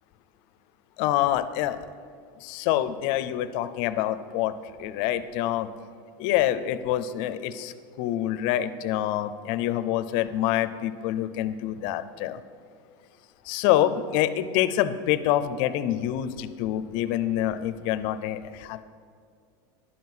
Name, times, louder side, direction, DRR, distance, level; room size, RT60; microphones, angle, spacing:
voice 1, 1.0-1.8 2.4-4.5 4.8-5.7 6.2-12.4 13.5-18.8, left 12 dB, 45° left, 12 dB, 0.5 m, -26 dB
11.0 x 5.6 x 7.7 m, 2.2 s
supercardioid pair, 170°, 11 cm